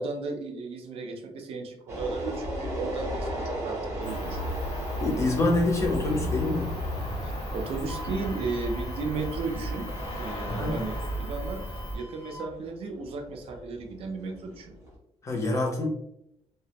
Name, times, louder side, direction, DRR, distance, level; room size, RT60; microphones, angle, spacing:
voice 1, 0.0-4.4 7.2-9.9 10.1-14.7, right 3 dB, 60° right, 3 dB, 0.5 m, -35 dB
sound 1, 1.9-15.0, equal, 25° right, 0.8 m, -37 dB
Cricket, 4.0-12.0, equal, 50° left, 1.0 m, -35 dB
voice 2, 5.0-6.7 10.5-10.7 15.2-15.9, left 2 dB, 25° left, 0 dB, 0.6 m, -26 dB
Wind instrument woodwind instrument, 7.9-12.5, equal, 80° left, 0.7 m, -47 dB
2.2 x 2.1 x 2.7 m, 0.80 s
cardioid pair, 150°, 11 cm